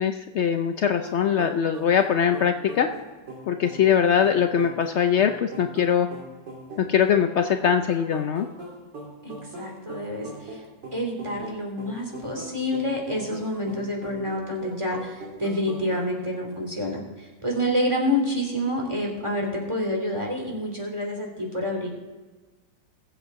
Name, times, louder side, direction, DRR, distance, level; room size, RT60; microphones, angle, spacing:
voice 1, 0.0-2.9 3.5-6.1 6.8-8.5, left 8 dB, 80° left, 6 dB, 0.6 m, -22 dB
sound 1, 1.0-16.1, right 2 dB, 80° right, 3.1 m, -41 dB
voice 2, 9.2-10.6 10.9-21.9, left 1 dB, 15° right, -1 dB, 3.0 m, -28 dB
21.0 x 8.0 x 3.6 m, 1.3 s
omnidirectional pair, 1.9 m